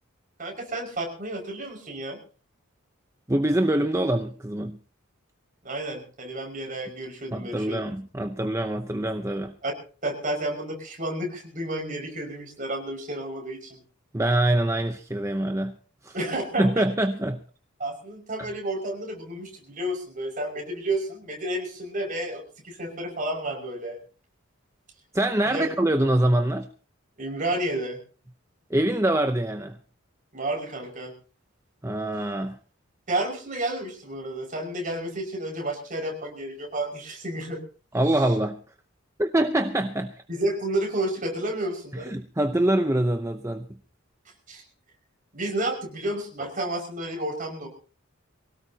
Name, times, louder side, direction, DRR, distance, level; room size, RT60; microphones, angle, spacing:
voice 1, 0.4-2.2 5.6-7.8 9.6-9.7 10.0-13.8 16.1-16.8 17.8-24.0 25.4-25.6 27.2-28.0 30.3-31.1 33.1-37.6 40.3-42.1 44.5-44.6 45.3-47.7, right 1 dB, 40° right, 2 dB, 5.8 m, -31 dB
voice 2, 3.3-4.8 7.3-9.5 14.1-15.8 16.0-16.2 16.6-17.4 18.4-18.5 25.1-26.7 28.7-29.8 31.8-32.6 37.9-38.6 39.2-40.2 41.9-43.8, right 1 dB, 15° right, 6 dB, 0.7 m, -24 dB
23.5 x 17.5 x 2.9 m, 0.39 s
head